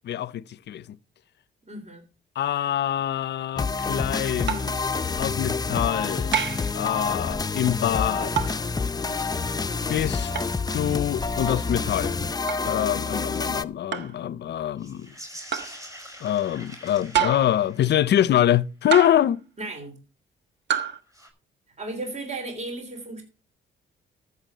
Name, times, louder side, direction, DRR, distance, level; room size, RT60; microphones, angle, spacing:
voice 1, 0.0-1.0 2.4-4.8 5.2-6.4 6.7-8.6 9.9-10.3 10.7-12.3 12.6-15.1 16.2-19.4, left 11 dB, 60° left, 0.6 m, -25 dB
voice 2, 1.7-2.0 19.6-20.0 21.8-23.2, right 2 dB, 35° right, 3.4 m, -35 dB
sound 1, 3.6-13.6, left 4 dB, 20° left, 0.6 m, -28 dB
sound 2, 4.5-4.8 6.3-6.7 8.4-8.6 10.3-10.5 12.5-12.7 13.9-14.2 15.5-15.8 17.1-17.6 18.9-19.4 20.7-21.0, right 9 dB, 60° right, 1.5 m, -27 dB
sound 3, 14.8-18.3 21.1-21.3, equal, 15° right, 5.1 m, -44 dB
14.0 x 6.8 x 5.5 m
cardioid pair, 90°, 20 cm